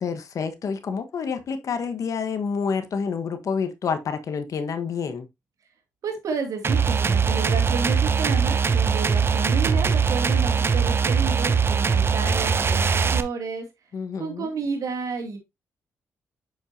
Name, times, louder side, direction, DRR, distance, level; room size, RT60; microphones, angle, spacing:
voice 1, 0.0-5.3 13.9-14.5, left 6 dB, 60° left, 1.3 m, -28 dB
voice 2, 6.0-13.7 14.2-15.4, right 5 dB, 70° right, 2.4 m, -31 dB
sound 1, 6.6-13.2, right 6 dB, 40° right, 0.8 m, -21 dB
7.1 x 6.1 x 2.7 m
supercardioid pair, 65°, 6 cm